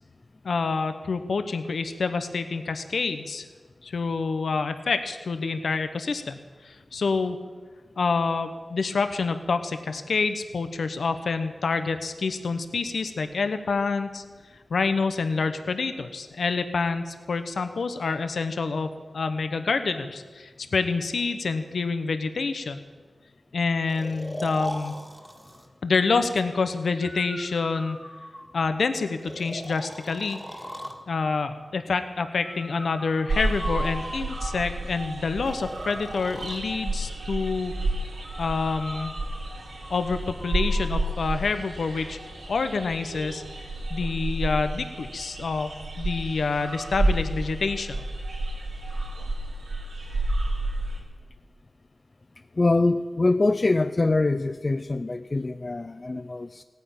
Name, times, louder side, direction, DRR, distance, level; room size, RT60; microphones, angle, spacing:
voice 1, 0.4-3.4 3.8-7.4 8.0-14.2 14.7-22.8 23.5-25.0 25.8-28.0 28.5-30.6 31.1-37.7 38.4-39.1 39.9-42.2 42.5-48.0, left 4 dB, 75° left, 9 dB, 1.0 m, -27 dB
Breathing, 23.9-25.7 27.0-28.7 29.2-31.0 32.4-34.7 35.4-36.6 38.2-41.1, equal, ahead, 1.9 m, -39 dB
sound 1, 33.3-51.0, right 1 dB, 90° right, 4.3 m, -31 dB
voice 2, 52.6-56.6, left 2 dB, 40° left, 11 dB, 0.5 m, -24 dB
16.5 x 9.7 x 8.7 m, 1.4 s
wide cardioid pair, 80°, 0 cm